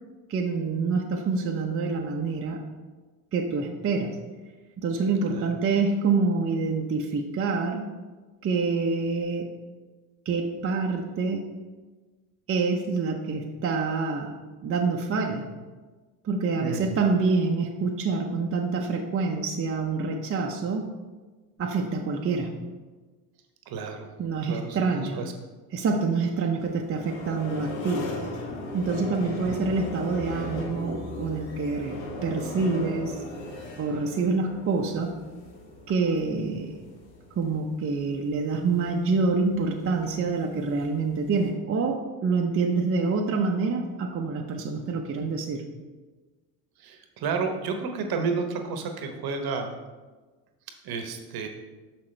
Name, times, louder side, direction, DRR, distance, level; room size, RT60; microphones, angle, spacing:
voice 1, 0.3-2.6 3.3-4.1 4.8-7.8 8.4-9.5 10.3-11.4 12.5-14.3 14.6-15.4 16.2-20.8 21.6-22.5 24.2-25.2 25.7-28.1 28.7-33.2 33.8-35.1 35.9-36.8 37.4-45.6, right 4 dB, 30° right, 1 dB, 0.7 m, -26 dB
voice 2, 16.6-17.0 23.7-24.1 24.4-25.3 29.4-29.5 46.8-49.7 50.8-51.5, right 5 dB, 50° right, 5 dB, 1.0 m, -31 dB
sound 1, 26.6-41.5, left 2 dB, 50° left, 1.5 m, -38 dB
6.0 x 5.9 x 3.2 m, 1.3 s
hypercardioid pair, 70°, 46 cm